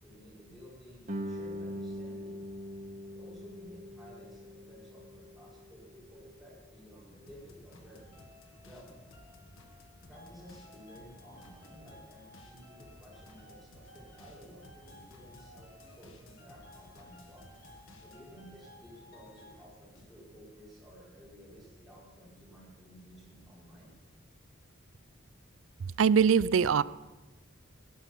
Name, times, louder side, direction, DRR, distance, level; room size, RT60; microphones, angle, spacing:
voice 1, 0.0-2.4 3.1-8.1 8.6-9.0 10.1-17.5 18.0-23.9, equal, ahead, -7 dB, 5.1 m, -54 dB
Guitar, 1.1-6.4, equal, 40° right, 1.2 m, -42 dB
sound 1, 7.3-18.5 18.8-20.2, left 1 dB, 75° left, 1.6 m, -58 dB
sound 2, 7.8-19.5, left 1 dB, 55° left, 4.3 m, -57 dB
voice 2, 26.0-26.8, right 6 dB, 70° right, 19 dB, 0.4 m, -22 dB
16.5 x 10.5 x 5.9 m, 1.2 s
head